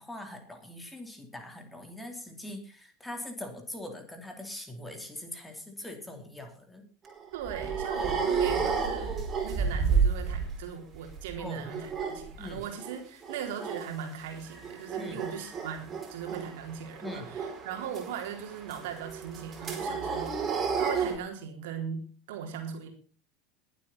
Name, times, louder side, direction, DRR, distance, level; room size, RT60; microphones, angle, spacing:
voice 1, 0.0-6.8 11.4-11.7 12.4-12.7 15.0-15.2 17.0-17.4, left 1 dB, 5° left, 4 dB, 3.6 m, -42 dB
sound 1, 7.0-10.7 10.9-13.0 13.2-13.9 14.2-21.2, right 5 dB, 25° right, 4.9 m, -31 dB
voice 2, 7.3-9.2 9.4-22.9, right 7 dB, 60° right, 3 dB, 3.8 m, -39 dB
21.5 x 8.3 x 4.2 m, 0.38 s
figure-of-eight pair, 75°, 0 cm